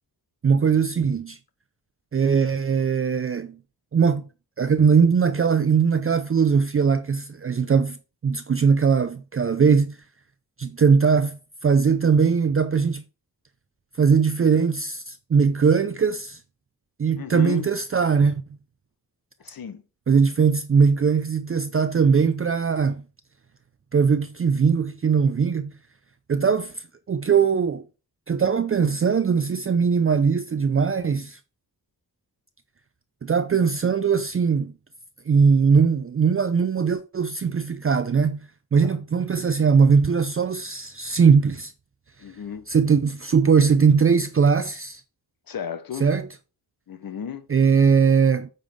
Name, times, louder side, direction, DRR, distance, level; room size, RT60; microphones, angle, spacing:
voice 1, 0.4-1.4 2.1-3.6 3.9-4.2 4.6-8.0 8.2-10.0 10.6-13.0 14.0-16.4 17.0-18.4 20.1-23.0 23.9-25.7 26.3-27.8 28.3-31.4 33.2-34.7 35.3-38.4 38.7-41.7 42.7-45.0 46.0-46.3 47.5-48.5, right 6 dB, 35° right, 0.5 m, -20 dB
voice 2, 17.2-17.7 19.4-19.8 38.8-39.0 42.2-42.7 45.5-46.1 46.9-47.5, left 8 dB, 65° left, 1.0 m, -34 dB
8.9 x 5.5 x 3.6 m
wide cardioid pair, 130°, 38 cm